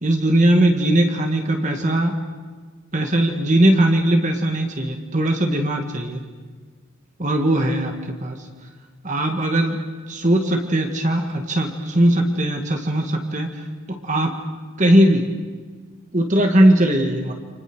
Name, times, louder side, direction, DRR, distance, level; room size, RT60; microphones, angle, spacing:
voice 1, 0.0-2.1 2.9-6.2 7.2-8.5 9.0-9.8 10.1-14.3 14.8-15.3 16.1-17.3, right 1 dB, 35° right, 3 dB, 2.0 m, -19 dB
29.0 x 26.5 x 6.3 m, 1.5 s
head